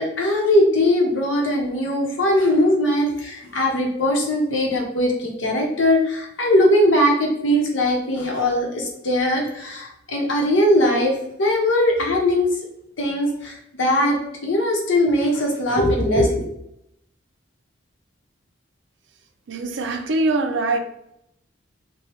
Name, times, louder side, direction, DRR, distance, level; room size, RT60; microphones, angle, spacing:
voice 1, 0.0-12.5 13.0-16.4, left 1 dB, 85° left, 0.9 m, -20 dB
voice 2, 19.5-20.8, right 2 dB, 70° right, 0.4 m, -22 dB
3.0 x 2.2 x 2.9 m
head